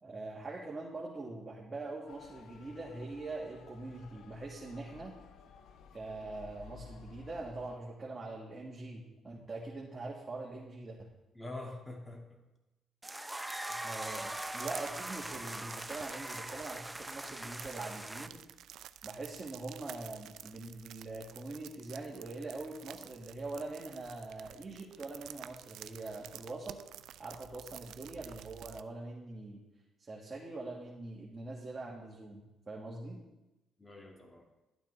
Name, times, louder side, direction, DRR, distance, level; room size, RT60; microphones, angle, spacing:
voice 1, 0.0-5.1 5.9-11.1 13.7-18.4 19.0-26.8 27.2-29.6 30.0-33.2, right 2 dB, 30° right, -4 dB, 1.6 m, -43 dB
Motor vehicle (road) / Siren, 2.1-7.8, left 7 dB, 75° left, 0.7 m, -55 dB
voice 2, 11.3-12.4 33.8-34.5, left 2 dB, 15° left, 1 dB, 1.9 m, -45 dB
sound 1, 13.0-18.3, right 1 dB, 10° right, 0.4 m, -41 dB
sound 2, 14.0-28.8, right 11 dB, 80° right, 0.3 m, -51 dB
12.0 x 8.8 x 3.3 m, 1.0 s
cardioid pair, 90°, 0 cm